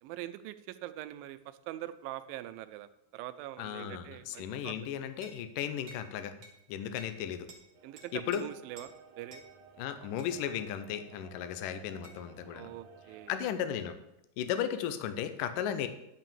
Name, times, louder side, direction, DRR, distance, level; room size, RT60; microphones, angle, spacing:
voice 1, 0.0-4.7 7.8-9.4 12.5-13.3, right 14 dB, 80° right, 13 dB, 2.3 m, -43 dB
voice 2, 3.6-6.3 6.7-7.5 8.1-8.4 9.8-12.7 13.3-14.0 14.4-15.9, left 9 dB, 75° left, 10 dB, 2.3 m, -35 dB
sound 1, 5.2-5.4 5.9-6.1 6.4-6.6 7.0-7.2 7.5-7.6 8.0-8.4 8.8-8.9 9.3-9.5 10.2-10.4 12.0-12.2, right 3 dB, 45° right, 1.7 m, -52 dB
sound 2, 7.7-13.6, right 5 dB, 65° right, 2.4 m, -56 dB
10.5 x 5.5 x 7.2 m, 0.85 s
omnidirectional pair, 4.2 m